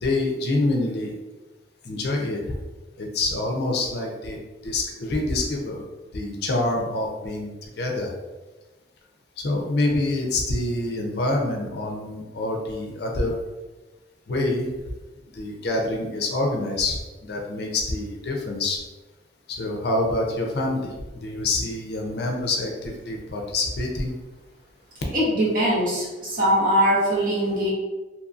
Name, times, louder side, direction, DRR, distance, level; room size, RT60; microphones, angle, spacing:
voice 1, 0.0-1.1 1.8-2.4 3.0-4.4 4.6-5.8 6.1-8.1 9.4-13.4 14.3-14.7 15.3-18.8 19.5-20.9 21.2-24.1, left 2 dB, 60° left, 1 dB, 0.5 m, -26 dB
voice 2, 25.1-27.7, equal, 50° right, -5 dB, 0.9 m, -21 dB
2.8 x 2.6 x 2.4 m, 1.2 s
head